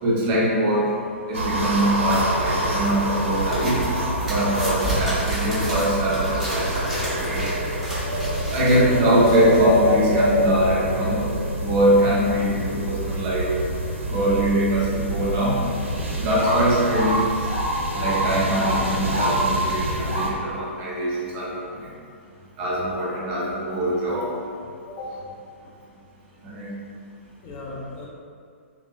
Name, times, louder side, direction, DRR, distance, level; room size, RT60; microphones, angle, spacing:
voice 1, 0.0-0.9 1.3-3.8 4.3-7.4 8.5-11.2 11.6-13.5 14.1-15.5 16.2-17.2 17.9-21.5 22.6-24.3 26.4-26.7, right 1 dB, 30° right, -6 dB, 0.6 m, -23 dB
sound 1, 1.3-20.3, right 1 dB, 70° right, 0.5 m, -26 dB
sound 2, 2.0-10.1, equal, ahead, 0.8 m, -34 dB
voice 2, 8.6-8.9 15.5-15.6 24.9-25.3 27.4-28.1, left 2 dB, 25° left, -4 dB, 0.4 m, -37 dB
sound 3, 16.4-19.8 20.0-20.4, right 1 dB, 85° left, 0.9 m, -26 dB
2.6 x 2.0 x 2.3 m, 2.3 s
figure-of-eight pair, 115°, 7 cm